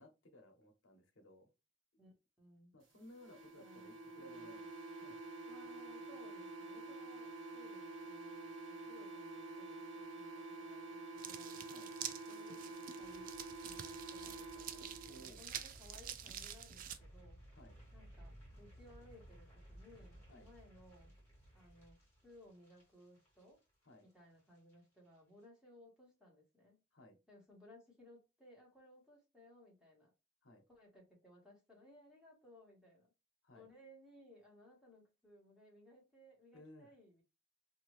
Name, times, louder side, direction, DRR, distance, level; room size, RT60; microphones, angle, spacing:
voice 1, 0.0-1.5 2.7-5.2 11.7-11.9 15.0-15.4 17.5-17.8 20.3-20.5 23.8-24.1 26.9-27.2 30.4-30.7 33.4-33.7 36.5-36.9, equal, 75° left, 0.9 m, -59 dB
voice 2, 2.0-2.7 3.5-4.6 5.4-11.6 12.3-13.3 13.6-14.9 15.2-17.4 17.9-21.1 21.5-23.6 24.0-26.8 27.3-30.1 30.7-33.1 33.5-37.2, left 1 dB, 5° right, 1.4 m, -62 dB
sound 1, 3.2-15.2, right 2 dB, 70° right, 0.9 m, -49 dB
sound 2, 11.2-17.0, right 9 dB, 45° right, 0.3 m, -48 dB
sound 3, 13.0-24.1 24.4-24.7 25.0-25.2, right 1 dB, 15° left, 1.6 m, -59 dB
2.7 x 2.6 x 3.1 m
head